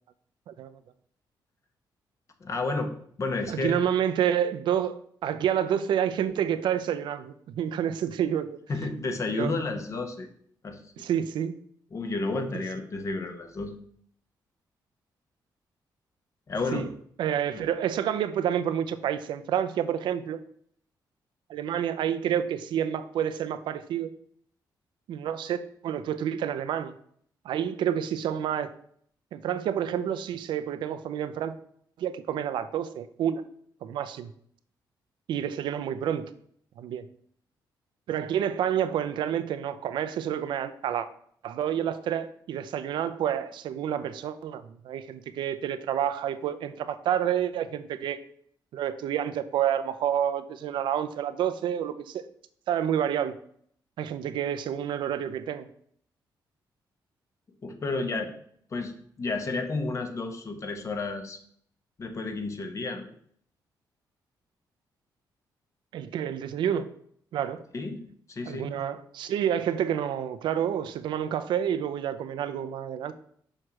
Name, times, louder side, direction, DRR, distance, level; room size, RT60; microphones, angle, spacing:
voice 1, 0.5-0.8 3.5-8.6 9.4-9.5 11.0-11.6 16.7-16.9 17.2-20.4 21.5-24.1 25.1-26.9 27.4-28.7 29.3-31.6 32.0-33.4 33.8-34.3 35.3-36.3 36.8-37.0 38.1-41.1 41.4-48.2 48.7-52.2 52.7-53.3 54.0-55.7 65.9-66.9 67.3-67.6 68.5-73.1, right 9 dB, 90° right, 0.5 m, -29 dB
voice 2, 2.4-2.9 3.2-3.8 8.7-10.3 10.6-10.8 11.9-13.7 16.5-16.9 17.5-17.7 57.6-58.3 58.7-61.4 62.0-63.1 67.7-68.7, left 3 dB, 40° left, 1.1 m, -31 dB
6.3 x 3.2 x 5.9 m
cardioid pair, 110°, 8 cm